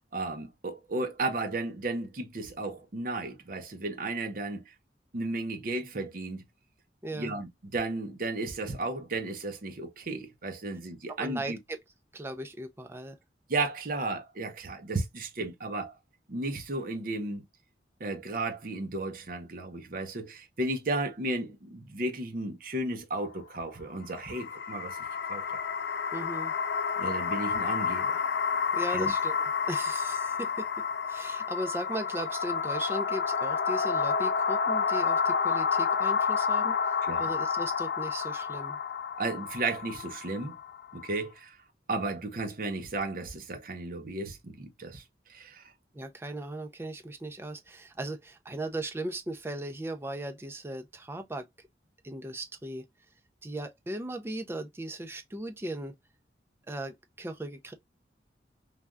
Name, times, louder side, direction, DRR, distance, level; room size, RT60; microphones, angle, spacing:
voice 1, 0.1-4.7 5.1-6.4 7.1-11.6 13.5-16.0 16.3-17.4 18.0-25.0 25.3-25.6 27.0-28.3 28.9-29.1 37.0-37.4 39.2-40.6 40.9-41.5 41.9-45.0 45.3-45.7, right 2 dB, 50° right, 0.7 m, -34 dB
voice 2, 7.0-7.4 11.1-11.8 12.1-13.2 26.1-26.5 28.7-36.8 37.2-38.8 45.9-51.5 52.0-52.8 53.4-55.9 56.7-57.7, right 1 dB, 15° right, 0.4 m, -37 dB
sound 1, 24.0-41.2, left 6 dB, 70° left, 0.3 m, -30 dB
3.3 x 2.2 x 2.4 m
head